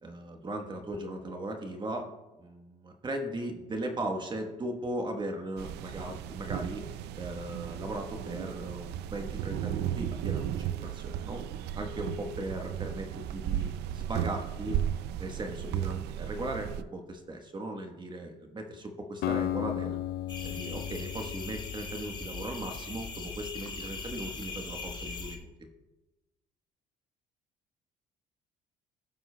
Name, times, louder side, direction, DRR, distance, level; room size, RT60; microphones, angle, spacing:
voice 1, 0.0-2.1 2.4-11.4 11.8-14.8 15.2-20.0 20.4-25.5, right 1 dB, 25° right, 4 dB, 1.2 m, -38 dB
sound 1, 5.6-16.8, right 11 dB, 80° right, 0.4 m, -35 dB
Acoustic guitar, 19.2-23.3, left 12 dB, 65° left, 0.4 m, -36 dB
sound 2, 20.3-25.4, left 4 dB, 25° left, 1.5 m, -40 dB
18.0 x 7.5 x 2.2 m, 1.1 s
cardioid pair, 110°, 17 cm